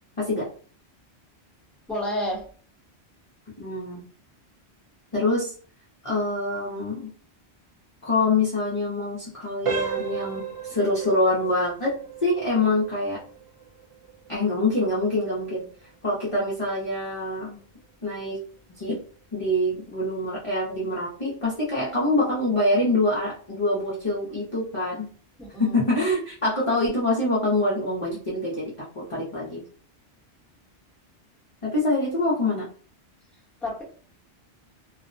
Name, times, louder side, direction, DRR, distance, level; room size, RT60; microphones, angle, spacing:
voice 1, 0.2-0.5 3.6-4.0 5.1-5.5 6.0-7.1 8.0-13.2 14.3-15.7 16.0-17.6 18.0-18.4 18.8-19.0 19.3-25.1 25.6-29.6 31.6-32.7, left 2 dB, 35° left, -7 dB, 0.6 m, -25 dB
voice 2, 1.9-2.4 25.4-25.8 33.6-33.8, left 1 dB, ahead, -5 dB, 0.8 m, -30 dB
sound 1, 9.6-20.3 20.7-20.9 21.5-21.6 22.1-22.2, right 7 dB, 50° right, 0.4 m, -37 dB
2.4 x 2.0 x 2.5 m, 0.42 s
omnidirectional pair, 1.1 m